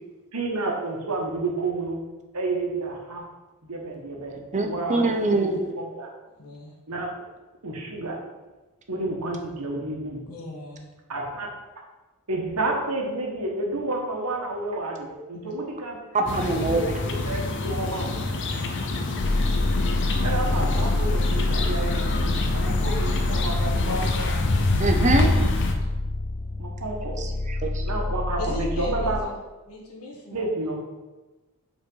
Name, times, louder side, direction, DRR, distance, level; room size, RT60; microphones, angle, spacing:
voice 1, 0.3-2.0 2.3-3.2 3.7-6.1 6.9-7.1 7.6-8.2 8.9-10.2 11.1-11.5 12.3-16.0 16.4-18.1 20.2-24.0 26.6-27.2 27.8-29.3 30.3-30.8, right 2 dB, 85° right, 0 dB, 1.4 m, -30 dB
voice 2, 4.5-5.8 16.1-16.9 24.8-25.3 27.2-27.9, right 2 dB, 35° right, 4 dB, 0.7 m, -24 dB
voice 3, 6.4-6.7 10.3-10.9 15.4-15.5 23.7-24.8 28.4-29.3 29.7-30.8, left 2 dB, 80° left, -2 dB, 1.7 m, -35 dB
sound 1, 16.3-25.7, left 2 dB, 55° left, 0.7 m, -26 dB
sound 2, 19.2-29.2, left 2 dB, 30° left, 0.4 m, -27 dB
5.4 x 4.3 x 5.5 m, 1.1 s
head